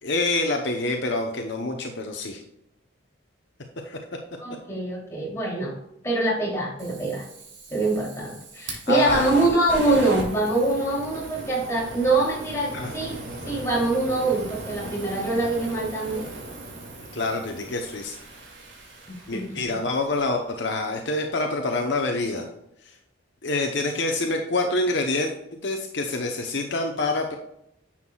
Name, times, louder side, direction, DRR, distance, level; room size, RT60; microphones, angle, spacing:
voice 1, 0.0-2.4 3.9-4.0 8.9-9.2 12.7-12.9 17.1-18.2 19.3-22.5 22.8-22.9 23.4-25.3 25.6-27.3, left 2 dB, 60° left, 3 dB, 0.9 m, -26 dB
voice 2, 4.4-5.8 6.0-7.3 7.7-13.2 13.5-16.3 19.1-19.6, right 2 dB, 15° left, -4 dB, 3.2 m, -24 dB
Fire, 6.8-19.9, right 2 dB, 60° right, 2.5 m, -37 dB
10.5 x 7.4 x 2.4 m, 0.79 s
head